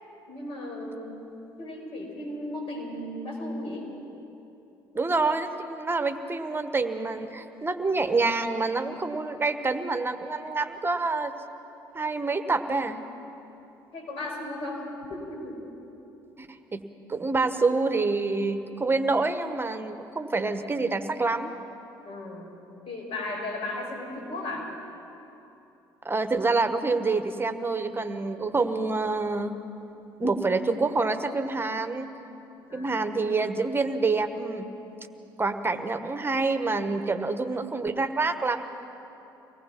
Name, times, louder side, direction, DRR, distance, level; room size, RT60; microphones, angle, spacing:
voice 1, 0.3-1.2 1.6-3.9 10.3-10.4 13.9-15.6 22.0-22.5 22.9-24.7 32.7-33.1, left 1 dB, 55° left, 0 dB, 5.8 m, -35 dB
voice 2, 4.9-11.3 11.9-13.0 16.4-16.5 16.7-16.8 17.1-21.6 26.0-29.6 30.2-32.1 32.7-34.7 35.4-38.6, right 3 dB, 20° right, 9 dB, 1.3 m, -27 dB
24.0 x 18.5 x 6.0 m, 3.0 s
hypercardioid pair, 55°, 11 cm